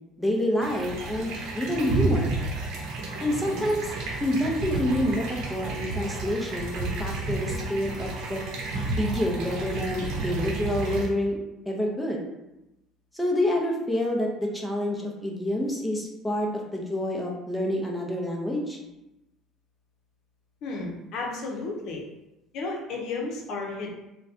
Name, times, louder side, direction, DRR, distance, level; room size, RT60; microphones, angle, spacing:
voice 1, 0.2-2.3 3.2-3.9 4.2-8.4 9.0-11.4 11.7-12.2 13.1-18.8, left 1 dB, 5° left, -1 dB, 0.7 m, -28 dB
sound 1, 0.6-11.1, right 3 dB, 70° right, 0.8 m, -31 dB
voice 2, 20.6-22.0 22.5-23.9, left 3 dB, 65° left, 0 dB, 0.7 m, -33 dB
3.9 x 2.2 x 2.7 m, 0.94 s
supercardioid pair, 100°, 0 cm